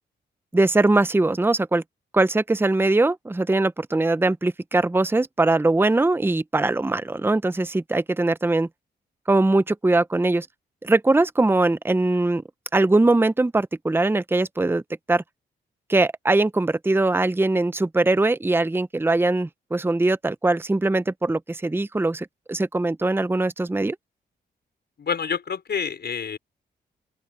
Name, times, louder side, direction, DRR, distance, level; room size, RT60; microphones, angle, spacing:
voice 1, 0.5-1.8 2.1-8.7 9.3-10.5 10.8-12.4 12.7-14.8 15.1-15.2 15.9-24.0, right 2 dB, 10° right, 0.7 m, -21 dB
voice 2, 25.0-26.4, left 6 dB, 60° left, 5.4 m, -28 dB
open air
cardioid pair, 65°, 19 cm